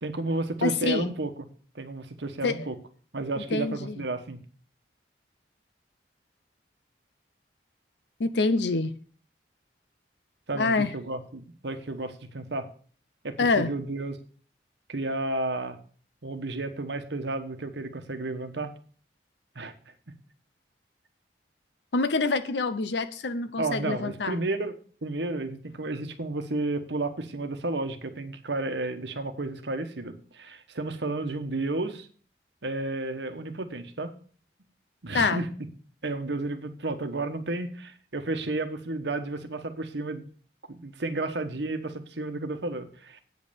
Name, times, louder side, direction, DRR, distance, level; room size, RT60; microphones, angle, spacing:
voice 1, 0.0-1.3 1.7-2.7 3.1-4.4 10.5-12.7 13.2-14.1 14.9-15.8 16.2-18.7 19.5-19.7 23.6-24.7 25.0-32.1 32.6-34.1 35.0-35.4 36.0-40.2 40.7-43.2, right 2 dB, 75° right, 1.2 m, -32 dB
voice 2, 0.6-1.1 2.4-2.7 3.5-4.0 8.2-8.9 10.5-10.9 13.4-13.7 21.9-24.4 35.1-35.5, left 3 dB, 75° left, 0.7 m, -26 dB
8.6 x 5.4 x 6.9 m
head